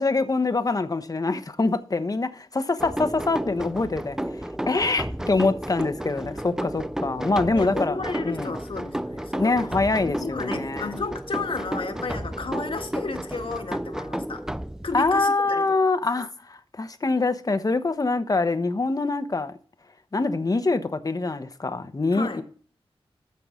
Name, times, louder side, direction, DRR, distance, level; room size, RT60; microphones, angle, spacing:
voice 1, 0.0-8.5 9.4-10.9 14.9-19.5 20.1-22.4, left 3 dB, 35° left, 1.1 m, -25 dB
sound 1, 2.8-15.3, right 1 dB, 5° right, 0.4 m, -32 dB
voice 2, 7.5-9.7 10.0-14.5 14.8-15.9 22.1-22.4, left 3 dB, 60° left, 1.7 m, -33 dB
14.0 x 5.8 x 3.8 m
wide cardioid pair, 90°, 10 cm